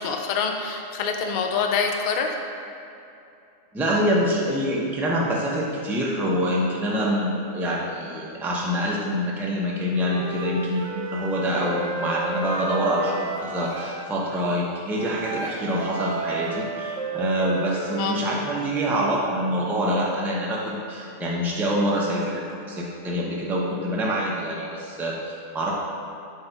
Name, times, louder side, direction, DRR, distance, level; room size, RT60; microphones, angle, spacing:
voice 1, 0.0-2.3 18.0-18.4, left 5 dB, 60° left, 3 dB, 0.5 m, -26 dB
voice 2, 3.7-25.7, equal, ahead, -4 dB, 0.5 m, -26 dB
Wind instrument woodwind instrument, 10.0-14.0 15.0-18.4, right 3 dB, 75° right, 1.0 m, -32 dB
7.8 x 2.8 x 4.4 m, 2.7 s
omnidirectional pair, 1.3 m